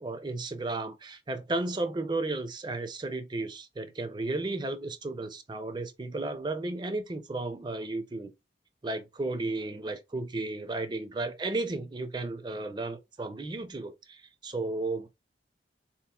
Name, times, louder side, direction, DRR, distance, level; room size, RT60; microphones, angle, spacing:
voice 1, 0.0-8.3 8.8-15.1, right 2 dB, 25° right, 0.4 m, -34 dB
3.8 x 2.9 x 2.3 m
head